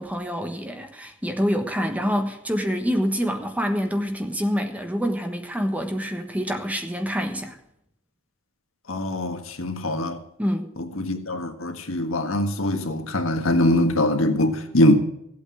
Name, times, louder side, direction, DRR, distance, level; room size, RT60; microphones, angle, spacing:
voice 1, 0.0-7.6 10.4-10.7, equal, 5° right, 1.3 m, -26 dB
voice 2, 8.9-10.2 10.8-15.0, left 1 dB, 75° left, 1.7 m, -22 dB
16.0 x 8.6 x 8.5 m
head